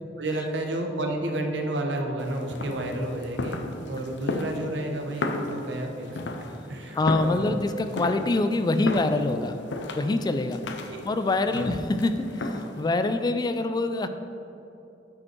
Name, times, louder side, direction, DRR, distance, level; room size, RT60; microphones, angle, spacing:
voice 1, 0.2-6.2 6.7-7.6 10.9-11.0 11.5-11.6, right 1 dB, 75° right, 3 dB, 0.9 m, -31 dB
Footsteps on wooden floor, 2.2-12.9, left 2 dB, 80° left, 0.7 m, -35 dB
voice 2, 6.9-9.6 9.9-10.8 11.0-14.1, left 2 dB, 25° left, 9 dB, 0.3 m, -25 dB
9.6 x 5.2 x 4.5 m, 2.8 s
head